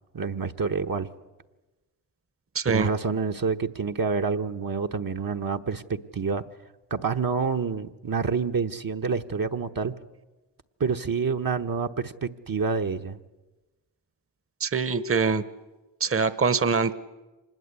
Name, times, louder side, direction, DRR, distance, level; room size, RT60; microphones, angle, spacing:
voice 1, 0.1-1.1 2.7-5.8 6.1-6.4 6.9-9.9 10.8-13.2, right 5 dB, 50° right, 4 dB, 1.2 m, -27 dB
voice 2, 2.5-2.9 14.6-15.4 16.0-16.9, right 5 dB, 30° right, 15 dB, 1.1 m, -24 dB
25.5 x 20.5 x 8.4 m, 1.1 s
cardioid pair, 40°, 43 cm